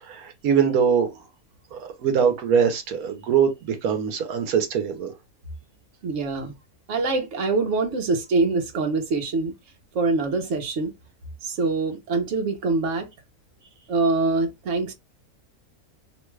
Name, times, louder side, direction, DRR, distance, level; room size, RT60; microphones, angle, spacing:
voice 1, 0.0-1.1 1.7-5.1, right 7 dB, 85° right, 1.2 m, -22 dB
voice 2, 6.0-6.5 6.9-9.5 9.9-10.9 11.4-13.1 13.9-14.9, right 3 dB, 60° right, 1.1 m, -24 dB
3.0 x 2.3 x 3.1 m
omnidirectional pair, 1.5 m